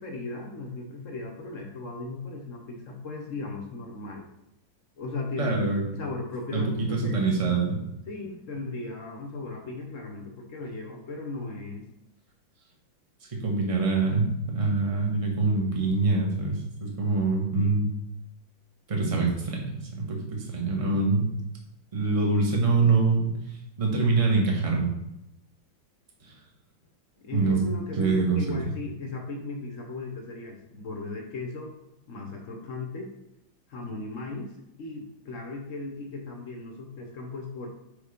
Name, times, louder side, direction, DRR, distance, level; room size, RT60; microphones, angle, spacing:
voice 1, 0.0-4.3 5.0-5.6 5.9-7.6 8.1-11.9 17.6-17.8 27.2-31.7 32.1-33.1 33.7-37.7, left 2 dB, 50° left, 2 dB, 1.0 m, -37 dB
voice 2, 5.4-5.8 6.5-7.8 13.3-17.9 18.9-21.3 21.9-23.4 23.8-24.9 27.3-27.6 28.0-28.4, right 3 dB, 20° right, -1 dB, 1.0 m, -25 dB
5.1 x 5.0 x 5.0 m, 0.87 s
omnidirectional pair, 2.2 m